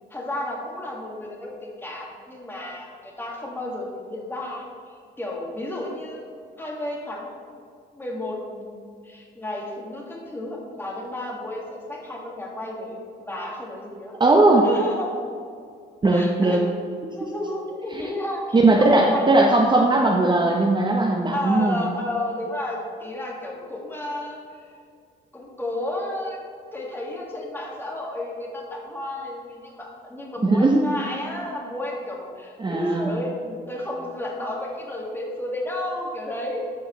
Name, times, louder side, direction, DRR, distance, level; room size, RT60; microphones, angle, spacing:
voice 1, 0.0-6.3 6.6-7.4 7.9-14.1 14.6-15.1 16.1-16.7 17.1-19.5 21.3-24.8 25.3-26.4 26.7-36.7, left 1 dB, 10° left, -2 dB, 1.7 m, -32 dB
voice 2, 14.2-14.7 16.0-16.6 17.9-18.0 18.5-21.8 30.4-30.8 32.6-33.1, right 2 dB, 25° right, 0 dB, 0.7 m, -18 dB
13.0 x 4.7 x 3.1 m, 2.3 s
cardioid pair, 90°, 20 cm